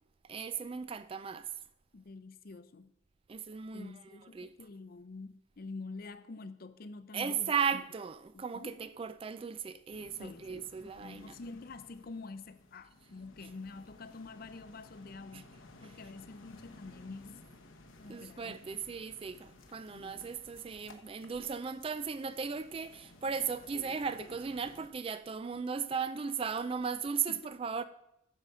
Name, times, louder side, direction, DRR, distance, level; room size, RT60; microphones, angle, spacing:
voice 1, 0.3-1.4 3.3-3.9 4.3-4.5 7.1-11.3 18.1-27.8, right 6 dB, 30° right, 0.3 m, -36 dB
voice 2, 1.9-2.9 3.7-7.8 8.3-8.8 10.2-10.7 11.0-15.5 15.8-17.4 18.0-19.0 19.9-20.3 27.3-27.5, left 3 dB, 50° left, 0.5 m, -47 dB
sound 1, 9.9-24.9, left 2 dB, 80° left, 1.0 m, -57 dB
9.9 x 4.9 x 6.8 m
head